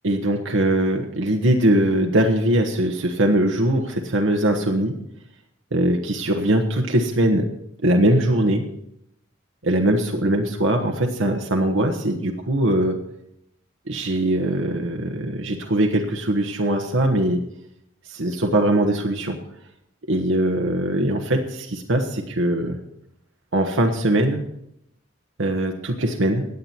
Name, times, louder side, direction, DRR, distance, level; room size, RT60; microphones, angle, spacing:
voice 1, 0.0-5.0 5.7-7.5 7.8-8.7 9.6-13.0 13.9-17.4 18.1-19.4 20.1-22.8 23.5-24.4 25.4-26.5, right 1 dB, 85° right, 2 dB, 1.2 m, -21 dB
16.5 x 9.6 x 4.4 m, 0.78 s
head